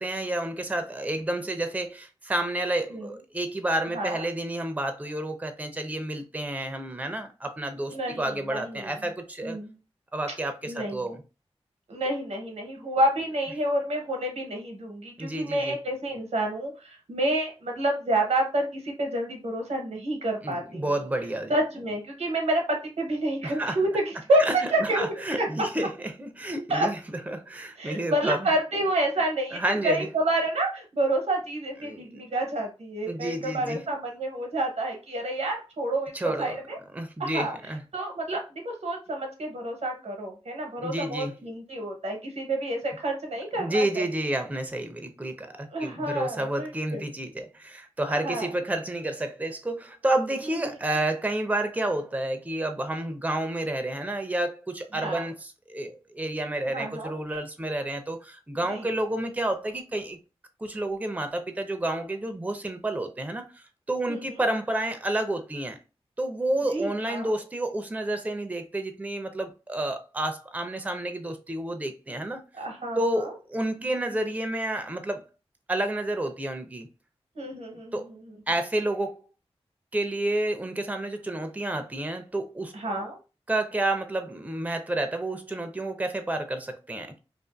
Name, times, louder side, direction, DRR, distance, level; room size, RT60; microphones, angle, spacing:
voice 1, 0.0-9.6 10.1-11.2 15.2-15.8 20.4-21.5 23.4-23.8 24.4-24.5 24.8-25.9 26.2-27.0 27.3-28.5 29.5-30.1 31.8-32.2 33.1-33.8 36.1-36.6 36.9-37.8 40.8-41.3 43.6-60.2 60.6-65.8 66.2-72.4 73.0-75.2 75.7-76.9 77.9-78.0 78.5-79.3 79.9-82.7 83.5-87.2, right 1 dB, 15° right, 0.5 m, -30 dB
voice 2, 3.9-4.2 7.9-9.0 9.4-9.7 10.6-11.1 11.9-20.8 21.5-25.5 26.7-26.9 27.8-36.8 37.2-37.5 37.9-44.1 45.7-47.0 48.1-48.5 50.5-50.8 54.9-55.3 56.6-57.2 58.7-58.9 64.1-64.4 66.7-67.4 72.6-73.3 77.3-78.1 82.7-83.2, right 1 dB, 80° right, 0.8 m, -29 dB
2.5 x 2.4 x 2.3 m
cardioid pair, 40°, 11 cm